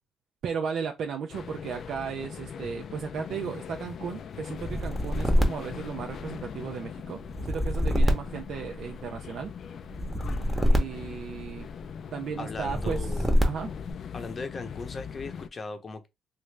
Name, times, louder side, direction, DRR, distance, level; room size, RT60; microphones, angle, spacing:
voice 1, 0.4-9.5 10.7-11.7 12.1-13.7, right 6 dB, 70° right, 0.4 m, -35 dB
sound 1, 1.3-15.5, left 7 dB, 60° left, 0.3 m, -41 dB
sound 2, 4.6-6.6 7.2-9.2 9.9-11.8 12.6-13.9, equal, 10° right, 0.8 m, -26 dB
voice 2, 12.4-13.3 14.1-16.1, left 3 dB, 35° left, 0.7 m, -38 dB
3.1 x 2.5 x 3.2 m
cardioid pair, 90°, 0 cm